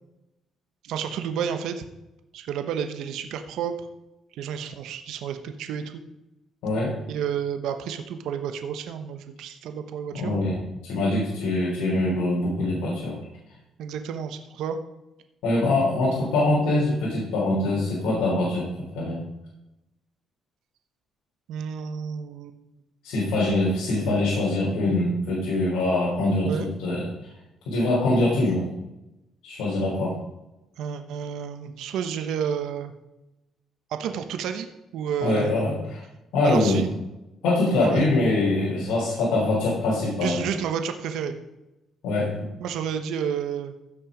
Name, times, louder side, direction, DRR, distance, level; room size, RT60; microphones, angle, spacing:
voice 1, 0.8-1.8 2.3-3.8 4.3-6.0 7.1-10.3 13.8-14.8 21.5-22.6 26.4-26.7 30.8-32.9 33.9-35.6 36.4-36.9 37.8-38.1 40.2-41.3 42.6-43.7, right 8 dB, 80° right, 7 dB, 1.0 m, -30 dB
voice 2, 10.1-10.6 10.8-13.2 15.4-18.7 18.9-19.2 23.0-27.1 27.7-28.7 29.4-30.2 35.2-35.7 36.3-36.9 37.4-40.4 42.0-42.3, left 2 dB, 90° left, -6 dB, 3.6 m, -23 dB
15.5 x 6.2 x 5.0 m, 0.94 s
cardioid pair, 110°, 0 cm